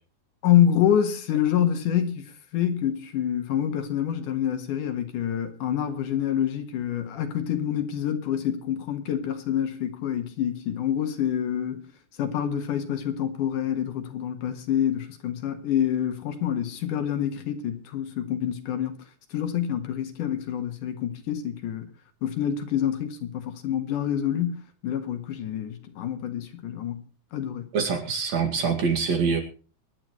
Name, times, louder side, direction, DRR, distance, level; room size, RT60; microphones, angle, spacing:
voice 1, 0.4-11.9 12.2-19.0 19.3-21.9 22.2-27.0 27.3-27.7, left 10 dB, 75° left, 3.1 m, -27 dB
voice 2, 27.7-29.4, right 5 dB, 55° right, 3.2 m, -24 dB
24.0 x 11.0 x 3.1 m
omnidirectional pair, 3.8 m